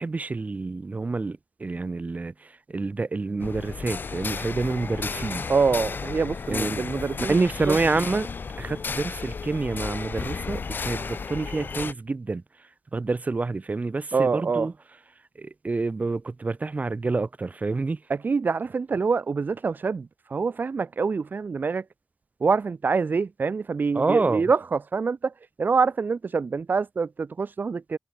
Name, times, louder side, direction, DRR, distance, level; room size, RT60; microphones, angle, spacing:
voice 1, 0.0-2.3 2.7-5.4 6.5-6.8 7.3-8.3 8.6-12.4 12.9-14.7 15.4-18.0 23.9-24.5, right 3 dB, 45° right, 1.5 m, -28 dB
sound 1, 3.4-11.9, left 5 dB, 75° left, 0.9 m, -33 dB
voice 2, 5.5-7.8 14.1-14.7 18.1-21.8 22.4-25.3 25.6-28.0, right 5 dB, 65° right, 0.5 m, -25 dB
wide cardioid pair, 95°, 3 cm